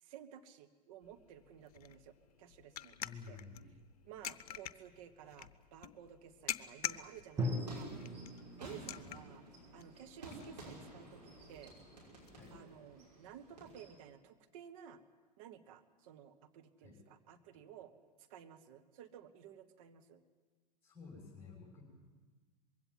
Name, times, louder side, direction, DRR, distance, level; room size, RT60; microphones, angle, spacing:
voice 1, 0.0-3.4 4.1-7.9 8.6-9.4 9.7-11.7 12.5-15.0 15.4-17.9 18.2-20.2, right 9 dB, 55° right, 8 dB, 1.5 m, -55 dB
sound 1, 1.0-12.3, left 10 dB, 60° left, 0.7 m, -48 dB
voice 2, 3.0-3.7 8.9-9.2 12.3-12.6 16.8-17.0 20.8-21.8, left 5 dB, 10° left, -6 dB, 6.8 m, -53 dB
sound 2, 7.3-14.0, right 2 dB, 80° right, 5.9 m, -53 dB
Drum, 7.4-11.2, equal, 15° right, 2.2 m, -42 dB
21.5 x 16.5 x 9.4 m, 1.4 s
figure-of-eight pair, 85°, 21 cm